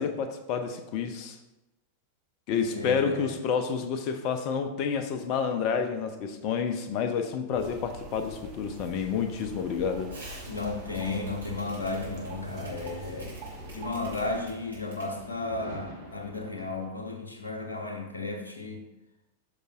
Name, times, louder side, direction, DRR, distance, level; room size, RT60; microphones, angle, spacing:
voice 1, 0.0-1.4 2.5-10.1, left 6 dB, 40° left, 7 dB, 0.9 m, -29 dB
voice 2, 2.7-3.3 10.5-13.3 13.7-18.8, left 3 dB, 75° left, 4 dB, 1.1 m, -34 dB
sound 1, 7.5-14.4, right 1 dB, 40° right, 2.1 m, -43 dB
Fireworks, 10.1-16.9, right 2 dB, 80° right, 2.7 m, -47 dB
13.5 x 5.4 x 2.6 m, 0.95 s
figure-of-eight pair, 90°, 0 cm